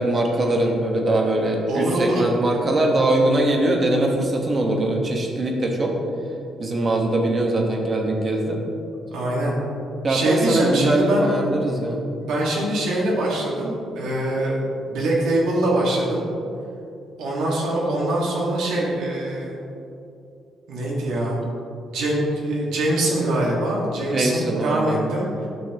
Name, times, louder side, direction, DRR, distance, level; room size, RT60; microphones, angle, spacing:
voice 1, 0.0-5.9 6.6-8.6 10.0-12.0 24.1-25.0, right 1 dB, 40° right, 1 dB, 1.2 m, -22 dB
voice 2, 1.7-2.2 9.1-9.6 10.1-11.2 12.2-14.6 14.9-16.2 17.2-19.6 20.7-21.4 21.9-25.5, right 1 dB, 85° right, -4 dB, 1.7 m, -23 dB
9.5 x 6.2 x 3.0 m, 2.6 s
cardioid pair, 90°, 0 cm